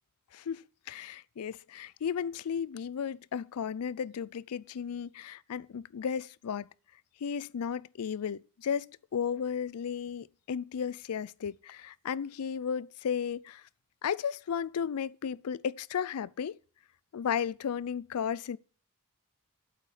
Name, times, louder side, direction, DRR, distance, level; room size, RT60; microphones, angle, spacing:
voice 1, 0.3-6.7 7.2-13.6 14.0-16.6 17.1-18.6, left 7 dB, 75° left, 0.4 m, -34 dB
8.4 x 8.2 x 4.9 m
head